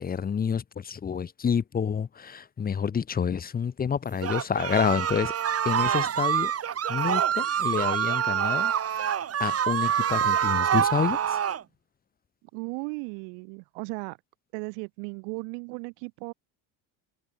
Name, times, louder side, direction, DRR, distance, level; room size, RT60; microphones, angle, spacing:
voice 1, 0.0-5.3 5.6-6.5 6.9-9.1 9.4-11.4, left 7 dB, 20° left, 0.8 m, -28 dB
sound 1, 4.2-11.6, right 9 dB, 35° right, 2.0 m, -26 dB
voice 2, 12.5-14.2 14.5-16.3, right 40 dB or more, 85° right, 7.9 m, -36 dB
cardioid pair, 115°, 43 cm